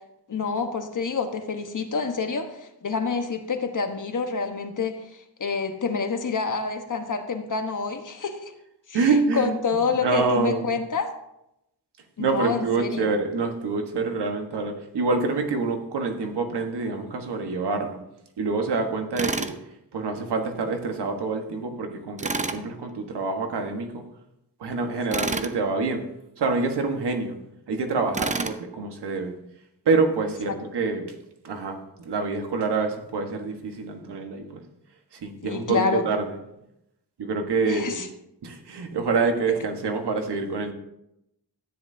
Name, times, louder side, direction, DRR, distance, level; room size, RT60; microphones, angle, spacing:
voice 1, 0.3-8.5 8.9-9.0 9.3-11.1 12.2-13.2 25.1-25.3 30.5-30.6 35.4-36.0 37.7-38.1, left 5 dB, 50° left, 5 dB, 1.3 m, -28 dB
voice 2, 8.9-9.5 9.9-10.7 12.2-18.0 18.4-19.5 19.9-24.0 24.6-26.0 26.4-27.4 27.7-29.3 29.8-31.1 31.4-34.6 35.1-36.4 37.2-38.0 38.4-40.7, right 4 dB, 90° right, 4 dB, 1.5 m, -26 dB
Tools, 19.2-19.6 22.2-22.6 25.1-25.5 28.1-28.6, right 3 dB, 20° right, 0.7 m, -28 dB
13.5 x 9.8 x 2.8 m, 0.84 s
wide cardioid pair, 90°, 39 cm